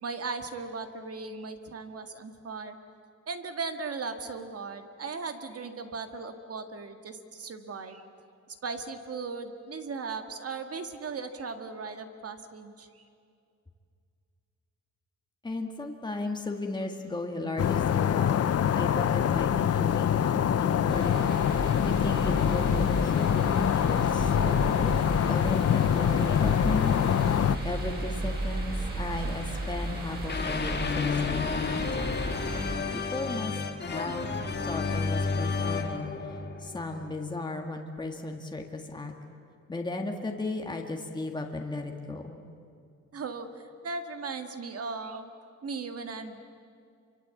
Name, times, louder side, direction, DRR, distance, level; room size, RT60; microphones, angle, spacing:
voice 1, 0.0-2.8 3.3-8.0 8.5-13.0 43.1-45.3 45.6-46.4, right 4 dB, 55° right, 7 dB, 1.9 m, -37 dB
voice 2, 15.4-21.3 21.8-24.9 25.2-32.2 32.9-34.4 34.6-36.1 36.6-39.1 39.7-42.4, left 2 dB, 15° left, 2 dB, 1.8 m, -36 dB
sound 1, 17.6-27.6, left 9 dB, 55° left, 0.7 m, -25 dB
sound 2, 20.9-32.7, right 1 dB, 35° right, 7.0 m, -34 dB
sound 3, 30.3-37.3, left 4 dB, 35° left, 1.9 m, -31 dB
27.0 x 24.0 x 8.4 m, 2.4 s
wide cardioid pair, 140°, 29 cm